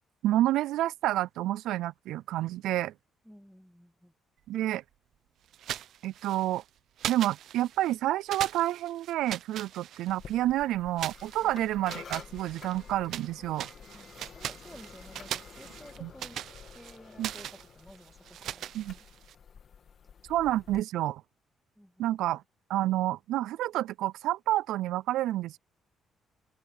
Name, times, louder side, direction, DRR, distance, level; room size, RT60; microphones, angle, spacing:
voice 1, 0.2-2.9 4.5-4.8 6.0-6.6 7.1-13.7 16.0-16.1 17.2-17.3 18.7-18.9 20.3-21.2 22.0-22.4 22.7-25.6, right 14 dB, 90° right, 0.3 m, -29 dB
voice 2, 3.2-4.1 11.4-11.6 13.9-14.1 14.3-16.4 16.7-19.1 21.8-22.1, equal, ahead, 2.0 m, -53 dB
sound 1, 5.5-6.6 7.0-8.0 8.3-10.4 11.0-13.3 13.6-19.3, right 11 dB, 70° right, 0.8 m, -40 dB
sound 2, 10.1-20.8, left 7 dB, 50° left, 2.5 m, -50 dB
cardioid pair, 120°, 0 cm